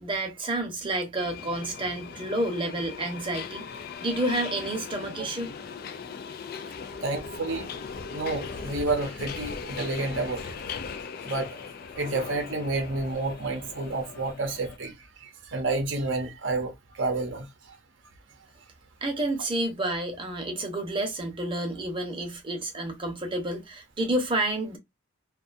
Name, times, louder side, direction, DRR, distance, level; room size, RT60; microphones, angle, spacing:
voice 1, 0.0-5.5 19.0-24.8, right 1 dB, 25° right, 0.8 m, -30 dB
Subway metro underground, 1.1-14.8, left 5 dB, 50° left, 0.3 m, -39 dB
voice 2, 7.0-7.7 8.1-10.6 11.2-11.6 11.9-14.9 15.2-17.5, right 3 dB, 65° right, 0.7 m, -30 dB
2.6 x 2.3 x 2.5 m
head